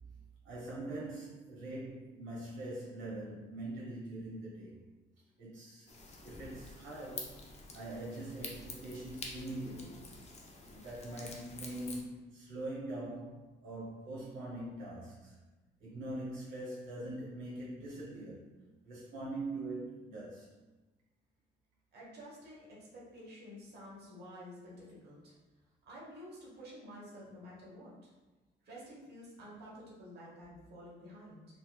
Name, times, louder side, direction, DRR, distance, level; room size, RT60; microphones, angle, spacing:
voice 1, 0.4-4.8 5.4-5.9 6.2-7.4 7.7-10.0 10.7-15.3 15.8-18.5 18.8-20.5, right 1 dB, 90° right, -6 dB, 1.1 m, -43 dB
sound 1, 5.9-12.0, left 3 dB, 35° left, 0.6 m, -48 dB
voice 2, 21.9-25.3 25.9-27.9 28.6-31.5, equal, 55° right, -6 dB, 1.1 m, -50 dB
3.9 x 2.3 x 2.3 m, 1.1 s
cardioid pair, 90°, 20 cm